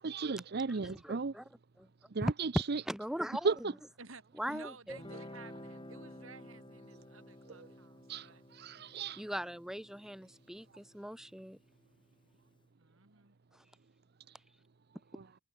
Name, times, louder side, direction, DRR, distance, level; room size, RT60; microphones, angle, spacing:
voice 1, 0.0-1.3 2.1-2.8 3.4-3.5 7.5-7.7 8.1-9.2 15.1-15.2, right 4 dB, 50° right, 0.6 m, -35 dB
voice 2, 0.7-1.5 1.8-1.9 2.2-3.9 4.3-5.0 9.2-11.6 13.5-13.6, equal, ahead, 0.8 m, -39 dB
voice 3, 4.5-8.4 12.8-13.4, right 4 dB, 85° right, 7.5 m, -54 dB
Guitar, 4.9-12.0, left 1 dB, 25° left, 4.7 m, -52 dB
head